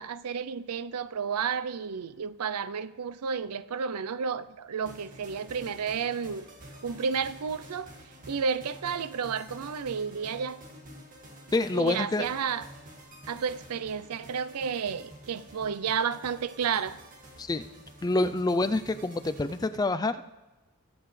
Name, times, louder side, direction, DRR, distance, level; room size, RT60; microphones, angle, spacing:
voice 1, 0.0-6.5 6.8-7.9 8.3-10.6 11.7-12.6 13.3-17.0, right 6 dB, 90° right, 0.5 m, -31 dB
sound 1, 4.8-19.7, right 1 dB, 35° right, 2.0 m, -49 dB
voice 2, 11.5-12.3 17.4-17.7 18.0-20.4, left 2 dB, 15° left, 0.4 m, -27 dB
23.0 x 8.0 x 3.2 m
head